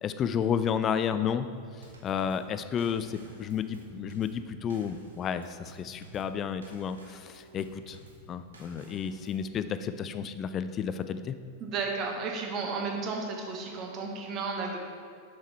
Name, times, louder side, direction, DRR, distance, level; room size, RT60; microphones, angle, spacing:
voice 1, 0.0-1.5 2.0-8.0 8.3-11.4, left 7 dB, 30° left, 11 dB, 0.4 m, -31 dB
Drum kit / Snare drum / Bass drum, 1.8-9.5, right 1 dB, 70° right, 1.1 m, -52 dB
voice 2, 11.6-14.8, right 4 dB, 35° right, 1 dB, 1.2 m, -33 dB
7.2 x 6.4 x 4.1 m, 2.3 s
figure-of-eight pair, 90°, 0 cm